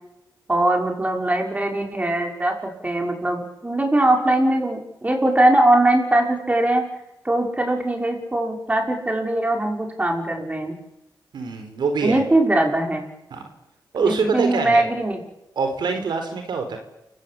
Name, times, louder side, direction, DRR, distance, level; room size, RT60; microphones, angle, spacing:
voice 1, 0.5-6.8 7.2-10.7 12.0-13.0 14.0-15.2, right 1 dB, 20° right, 2 dB, 5.8 m, -21 dB
voice 2, 11.3-12.2 13.3-13.4 13.9-14.9 15.6-16.8, right 4 dB, 85° right, 6 dB, 4.3 m, -24 dB
29.5 x 16.5 x 8.8 m, 0.89 s
cardioid pair, 85°, 8 cm